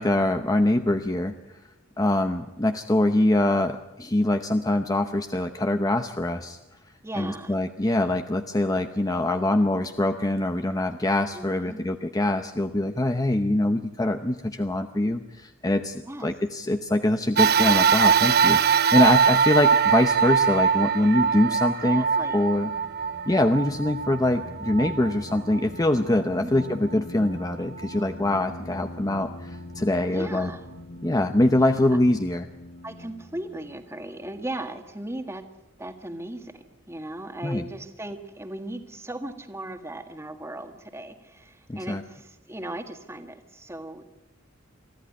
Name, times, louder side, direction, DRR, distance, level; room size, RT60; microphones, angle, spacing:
voice 1, 0.0-1.3 2.0-6.6 7.2-22.1 22.3-22.7 23.3-30.5 31.0-32.5 37.4-37.6 41.7-42.0, left 1 dB, 20° left, 7 dB, 0.8 m, -24 dB
voice 2, 7.0-7.6 11.3-11.9 16.1-16.3 21.8-22.4 26.4-26.5 30.0-30.6 31.5-32.0 32.8-35.4 35.8-44.1, right 1 dB, 15° right, 6 dB, 1.7 m, -37 dB
sound 1, 17.4-26.0 26.6-26.7 27.8-27.9, right 7 dB, 50° right, 0.8 m, -22 dB
sound 2, 21.9-35.1, left 1 dB, 55° left, 1.2 m, -43 dB
24.5 x 14.5 x 9.6 m, 0.98 s
head